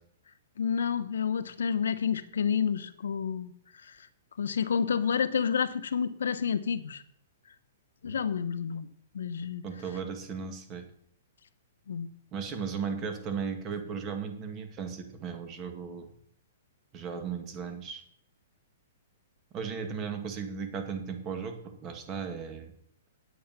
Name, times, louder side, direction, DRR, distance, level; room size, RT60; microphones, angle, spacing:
voice 1, 0.6-3.5 3.8-4.1 4.4-7.0 8.0-8.9 9.1-9.6 11.9-12.1, left 7 dB, 90° left, 12 dB, 1.0 m, -29 dB
voice 2, 9.6-10.9 12.3-16.1 16.9-18.0 19.5-22.7, right 6 dB, 25° right, 7 dB, 2.0 m, -36 dB
9.3 x 8.7 x 5.9 m, 0.66 s
hypercardioid pair, 155°, 0 cm